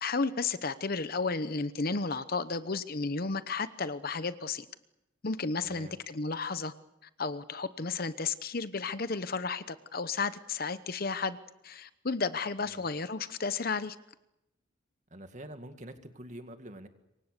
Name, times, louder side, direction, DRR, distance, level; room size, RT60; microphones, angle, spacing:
voice 1, 0.0-4.6 5.2-6.7 7.2-11.4 11.6-14.0, left 4 dB, 45° left, 13 dB, 0.9 m, -33 dB
voice 2, 5.6-6.0 12.6-12.8 15.1-16.9, right 1 dB, 35° right, 7 dB, 2.1 m, -46 dB
27.0 x 24.0 x 6.8 m, 0.87 s
head